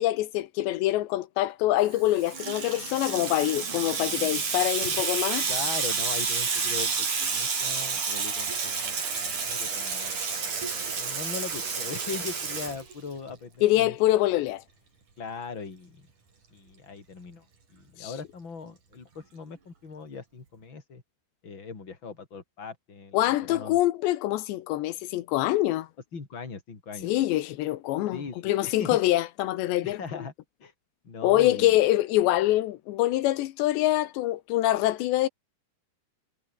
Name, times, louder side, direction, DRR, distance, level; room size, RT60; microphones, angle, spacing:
voice 1, 0.0-5.4 13.6-14.6 18.0-18.1 23.1-25.9 27.0-30.0 31.2-35.3, left 15 dB, 85° left, 3.4 m, -25 dB
Water tap faucet / Sink (filling or washing), 1.9-13.3, right 5 dB, 45° right, 6.4 m, -30 dB
voice 2, 5.5-14.0 15.2-16.1 16.5-17.4 17.7-21.0 21.4-23.8 26.1-27.1 28.1-29.0 29.8-30.3 30.6-30.7 31.0-31.8, left 5 dB, 30° left, 4.5 m, -40 dB
omnidirectional pair, 4.9 m